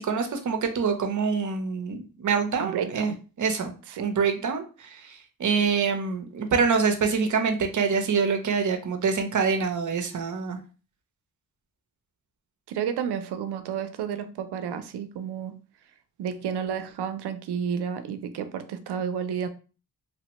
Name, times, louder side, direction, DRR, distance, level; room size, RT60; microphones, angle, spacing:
voice 1, 0.0-3.7 4.0-10.6, right 5 dB, 50° right, 5 dB, 0.7 m, -26 dB
voice 2, 2.6-3.2 3.9-4.1 12.7-15.6 16.2-19.5, right 8 dB, 90° right, 10 dB, 0.5 m, -31 dB
3.3 x 2.1 x 2.9 m, 0.36 s
cardioid pair, 90°, 39 cm